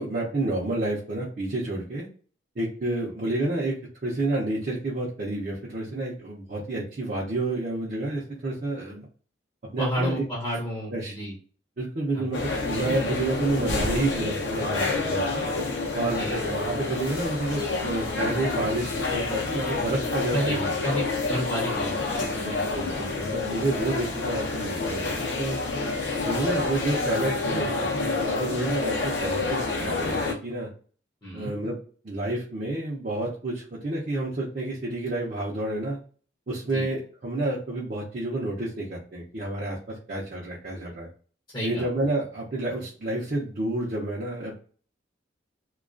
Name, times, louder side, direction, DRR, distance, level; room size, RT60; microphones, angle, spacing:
voice 1, 0.0-2.1 2.6-3.8 4.0-9.1 9.7-10.2 10.9-11.1 11.8-15.4 15.9-20.7 22.4-25.6 26.2-30.7 31.3-31.8 32.0-36.0 36.5-41.1 41.6-44.6, right 2 dB, 45° right, -5 dB, 0.5 m, -29 dB
voice 2, 9.8-11.3 12.1-12.2 16.0-16.4 20.3-22.5 31.2-31.5 36.7-36.9 41.5-41.9, equal, 25° left, -4 dB, 0.7 m, -30 dB
sound 1, 12.3-30.3, left 3 dB, 60° left, 0.6 m, -28 dB
2.3 x 2.3 x 2.4 m, 0.42 s
head